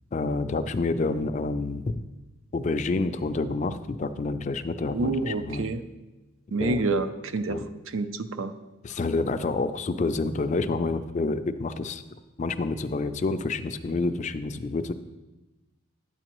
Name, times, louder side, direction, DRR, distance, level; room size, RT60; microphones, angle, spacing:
voice 1, 0.1-2.0 2.5-5.6 6.6-6.9 7.5-7.7 8.8-14.9, left 3 dB, 35° left, 10 dB, 0.3 m, -28 dB
voice 2, 4.9-5.8 6.5-7.6 7.9-8.5, right 3 dB, 75° right, 10 dB, 0.5 m, -28 dB
9.7 x 8.2 x 3.0 m, 1.1 s
head